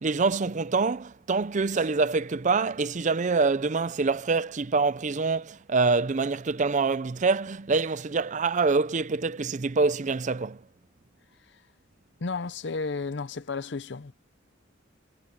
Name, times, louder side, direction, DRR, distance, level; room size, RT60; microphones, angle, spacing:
voice 1, 0.0-10.6, right 4 dB, 40° right, 0.5 m, -25 dB
voice 2, 12.2-14.1, left 4 dB, 65° left, 0.7 m, -32 dB
head